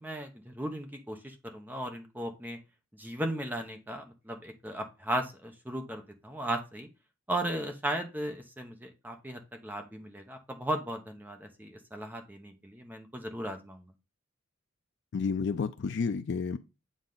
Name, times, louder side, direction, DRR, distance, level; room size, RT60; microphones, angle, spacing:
voice 1, 0.0-2.6 3.0-6.9 7.3-13.9, right 1 dB, 10° right, 0.8 m, -36 dB
voice 2, 15.1-16.6, left 5 dB, 55° left, 0.4 m, -30 dB
7.6 x 4.0 x 3.8 m
head